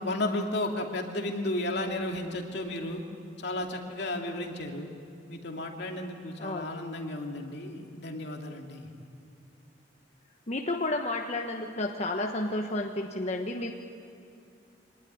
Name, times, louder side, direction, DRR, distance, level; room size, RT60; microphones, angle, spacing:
voice 1, 0.0-3.0 3.4-4.9 5.3-8.9, left 1 dB, 65° left, 2 dB, 2.6 m, -33 dB
voice 2, 10.5-13.7, left 2 dB, 35° left, 2 dB, 1.1 m, -31 dB
25.0 x 19.0 x 10.0 m, 2.5 s
head